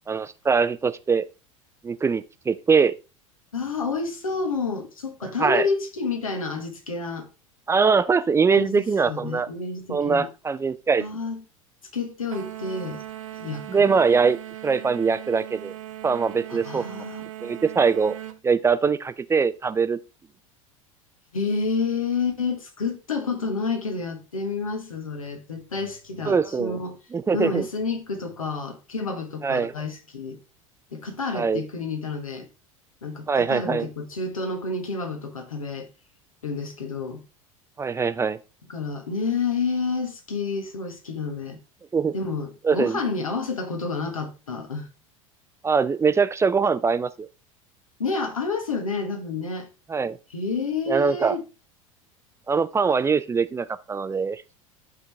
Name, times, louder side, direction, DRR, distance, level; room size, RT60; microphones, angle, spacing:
voice 1, 0.1-1.3 1.8-2.9 5.4-5.7 7.7-9.5 9.9-11.0 13.7-14.4 14.6-15.7 16.0-16.8 17.4-18.2 18.4-20.0 26.2-26.8 27.1-27.7 29.4-29.7 31.3-31.6 33.3-33.9 37.8-38.4 41.9-42.1 42.6-43.0 45.6-47.3 49.9-50.2 50.9-51.4 52.5-54.4, right 5 dB, 15° right, 0.4 m, -22 dB
voice 2, 3.5-7.3 8.5-10.3 11.0-11.4 11.9-13.0 13.3-13.9 16.5-17.2 21.3-27.0 27.3-30.4 30.9-32.5 33.0-35.9 36.4-37.2 38.7-41.6 42.1-44.9 48.0-49.7 50.3-51.4, left 4 dB, 85° left, 1.4 m, -29 dB
sound 1, 12.3-18.4, right 14 dB, 75° right, 0.9 m, -39 dB
11.0 x 3.9 x 3.4 m
figure-of-eight pair, 80°, 17 cm